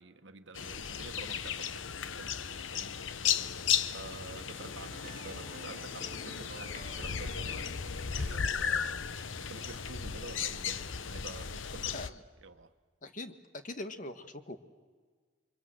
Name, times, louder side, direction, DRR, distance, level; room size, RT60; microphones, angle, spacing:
voice 1, 0.0-3.0 3.9-9.1 9.4-12.7, right 3 dB, 70° right, 1.4 m, -49 dB
sound 1, 0.5-12.1, left 7 dB, 80° left, 0.9 m, -35 dB
sound 2, 4.9-10.0, right 4 dB, 45° right, 1.7 m, -53 dB
voice 2, 13.0-13.3 13.6-14.6, left 2 dB, 40° left, 1.6 m, -41 dB
29.5 x 24.5 x 7.8 m
head